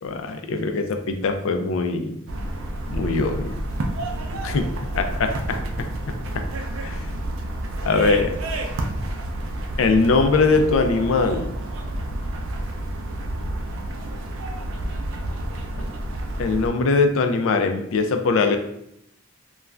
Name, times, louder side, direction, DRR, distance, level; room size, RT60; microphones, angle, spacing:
voice 1, 0.0-2.2 2.9-3.4 4.4-4.7 4.9-5.9 6.3-6.4 6.8-7.0 7.8-8.3 9.8-11.5 15.8-15.9 16.4-18.6, left 4 dB, 80° left, 6 dB, 0.4 m, -21 dB
sound 1, 2.3-16.7, right 1 dB, 85° right, 0.4 m, -29 dB
2.4 x 2.3 x 3.1 m, 0.77 s
head